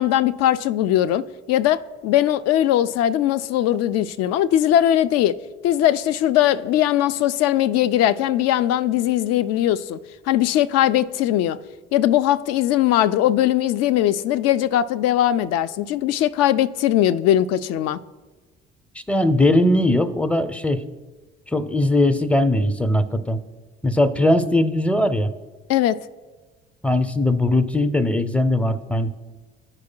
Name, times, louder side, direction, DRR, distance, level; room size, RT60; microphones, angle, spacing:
voice 1, 0.0-5.4 5.6-10.0 10.3-11.6 11.9-18.0 25.7-26.0, left 12 dB, 60° left, 0.4 m, -20 dB
voice 2, 19.1-20.8 21.5-23.4 23.8-25.3 26.8-29.1, left 1 dB, 5° left, 0.5 m, -19 dB
13.5 x 4.8 x 2.2 m
hypercardioid pair, 55°, 30 cm